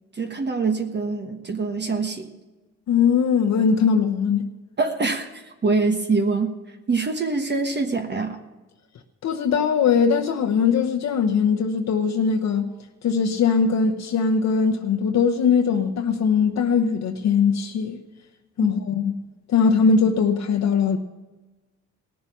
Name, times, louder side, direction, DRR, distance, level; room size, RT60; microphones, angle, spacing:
voice 1, 0.1-2.3 4.8-8.4, right 3 dB, 35° right, 1.3 m, -24 dB
voice 2, 2.9-4.5 9.2-12.7 13.0-18.0 18.6-19.2 19.5-21.0, left 6 dB, 65° left, 1.0 m, -20 dB
18.5 x 7.0 x 6.0 m
cardioid pair, 90°, 30 cm